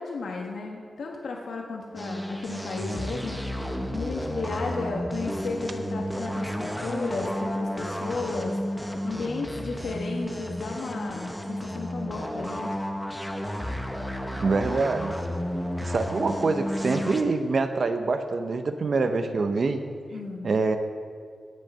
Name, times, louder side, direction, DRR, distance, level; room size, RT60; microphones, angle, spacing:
voice 1, 0.0-3.4 3.9-12.8 20.1-20.5, left 3 dB, 85° left, 0 dB, 1.2 m, -34 dB
sound 1, 2.0-17.2, equal, 5° left, 0.7 m, -32 dB
voice 2, 14.4-15.2 15.8-19.8 20.4-20.8, right 3 dB, 45° right, 8 dB, 0.6 m, -25 dB
17.0 x 6.4 x 5.4 m, 2.2 s
wide cardioid pair, 165°, 0 cm